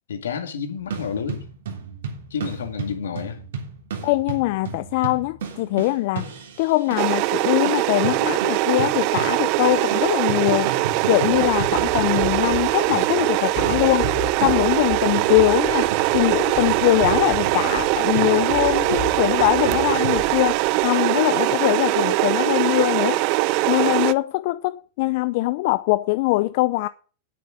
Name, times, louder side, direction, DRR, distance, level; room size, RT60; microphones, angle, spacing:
voice 1, 0.1-1.4 2.3-3.4, left 6 dB, 85° left, 2.2 m, -30 dB
sound 1, 0.8-7.3 7.7-9.6 9.9-20.2, right 5 dB, 80° right, 3.3 m, -34 dB
voice 2, 4.0-6.3 6.6-10.7 11.1-14.1 14.4-23.2 23.7-26.9, left 19 dB, 60° left, 0.6 m, -22 dB
sound 2, 7.0-24.1, right 18 dB, 55° right, 0.6 m, -22 dB
sound 3, 11.3-20.9, left 4 dB, 35° left, 4.0 m, -36 dB
9.3 x 8.6 x 7.7 m
hypercardioid pair, 105°, 0 cm